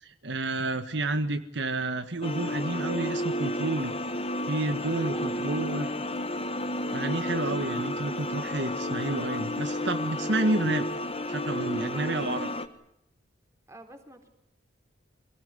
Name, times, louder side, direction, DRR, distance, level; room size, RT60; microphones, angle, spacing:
voice 1, 0.0-3.9 4.5-5.9 6.9-10.9 11.3-12.5, right 2 dB, 65° right, 8 dB, 1.5 m, -30 dB
sound 1, 2.2-12.7, left 1 dB, 30° left, 1.5 m, -31 dB
voice 2, 4.9-6.0 13.7-14.3, right 1 dB, 15° right, 5 dB, 4.0 m, -50 dB
26.0 x 18.0 x 9.8 m, 0.80 s
head